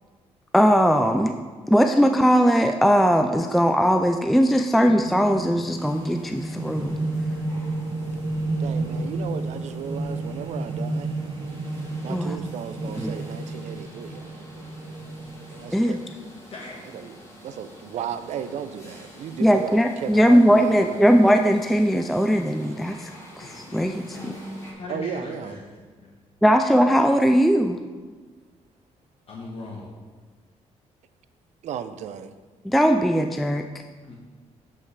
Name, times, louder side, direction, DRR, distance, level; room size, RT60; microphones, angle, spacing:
voice 1, 0.5-1.3 1.7-7.0 12.1-12.4 13.0-13.1 15.7-16.0 19.4-23.1 23.4-23.9 24.2-24.3 26.4-27.8 32.6-33.7, equal, ahead, 6 dB, 0.3 m, -19 dB
sound 1, 4.9-15.7, right 2 dB, 40° right, 1.4 m, -31 dB
sound 2, 5.7-24.7, equal, 25° left, 2.3 m, -46 dB
voice 2, 8.6-11.1 12.0-14.5 15.6-16.3 16.9-17.1 17.4-21.1 24.9-25.6 31.6-32.3, right 8 dB, 70° right, 11 dB, 0.5 m, -35 dB
voice 3, 16.5-16.8 23.7-24.1 24.8-25.6 26.0-26.1 29.3-29.9 34.0-34.1, left 2 dB, 50° left, -2 dB, 1.2 m, -38 dB
11.0 x 5.6 x 3.3 m, 1.4 s
cardioid pair, 115°, 12 cm